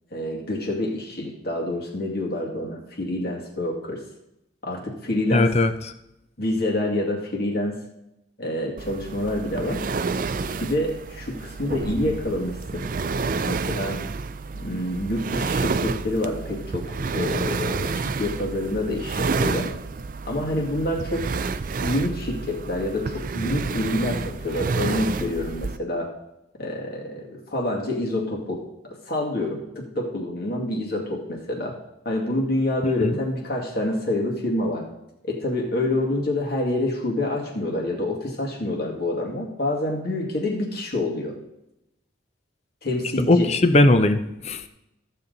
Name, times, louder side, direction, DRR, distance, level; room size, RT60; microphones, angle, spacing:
voice 1, 0.1-4.0 4.6-5.5 6.4-7.8 8.4-9.8 10.5-12.8 13.5-14.0 14.5-19.7 20.3-21.3 21.8-26.1 26.6-31.8 32.0-34.9 35.2-41.4 42.8-43.5, left 1 dB, 50° left, -1 dB, 2.2 m, -27 dB
voice 2, 5.3-5.9 33.0-33.1 43.3-44.7, left 2 dB, 35° left, 9 dB, 0.6 m, -19 dB
sound 1, 8.8-25.8, right 4 dB, 45° right, 0.4 m, -29 dB
14.5 x 7.3 x 4.0 m, 0.87 s
head